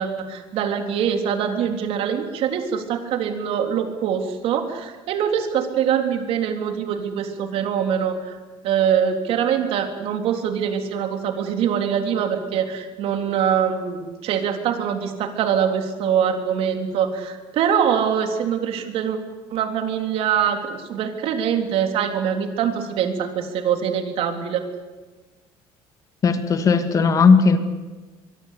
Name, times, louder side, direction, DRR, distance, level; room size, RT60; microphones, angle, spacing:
voice 1, 0.0-8.4 8.6-19.2 19.5-24.6, right 8 dB, 60° right, 5 dB, 3.7 m, -23 dB
voice 2, 26.2-27.6, left 5 dB, 30° left, 8 dB, 2.3 m, -16 dB
23.5 x 23.5 x 8.5 m, 1.3 s
cardioid pair, 140°, 11 cm